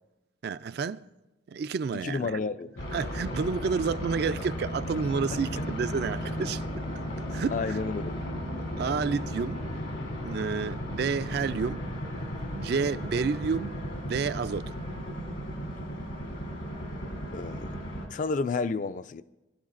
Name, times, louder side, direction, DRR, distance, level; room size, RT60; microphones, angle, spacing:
voice 1, 0.4-1.1 1.5-2.4 2.9-6.8 7.3-7.8 8.8-9.6 10.2-11.8 12.5-13.7 14.1-14.7, right 5 dB, 55° right, 0.3 m, -30 dB
voice 2, 2.0-2.8 7.5-8.1 17.3-17.8 18.1-19.2, left 4 dB, 40° left, 0.3 m, -31 dB
sound 1, 2.8-18.1, equal, 85° left, 2.9 m, -35 dB
21.5 x 12.0 x 2.5 m
head